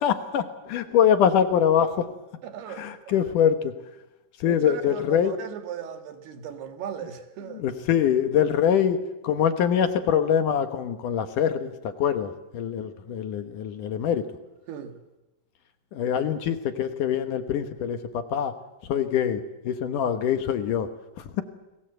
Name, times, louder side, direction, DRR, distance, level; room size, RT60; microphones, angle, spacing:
voice 1, 0.0-2.1 2.7-3.7 4.4-5.3 7.5-9.0 9.2-14.3 15.9-18.5 18.9-20.9, left 8 dB, 65° left, 2.5 m, -24 dB
voice 2, 2.4-3.3 4.4-7.6 14.7-15.0, right 8 dB, 85° right, 3.9 m, -37 dB
29.0 x 20.5 x 8.0 m
omnidirectional pair, 4.4 m